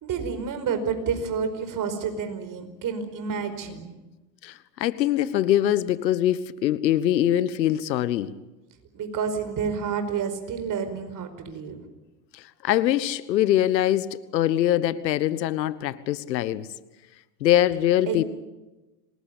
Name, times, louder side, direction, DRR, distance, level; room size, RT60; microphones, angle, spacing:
voice 1, 0.0-3.9 8.9-11.9 18.1-18.2, right 6 dB, 40° right, 5.0 m, -29 dB
voice 2, 4.4-8.4 12.3-16.7 17.4-18.2, left 12 dB, 90° left, 1.4 m, -23 dB
27.0 x 19.5 x 8.4 m
hypercardioid pair, 100°, 49 cm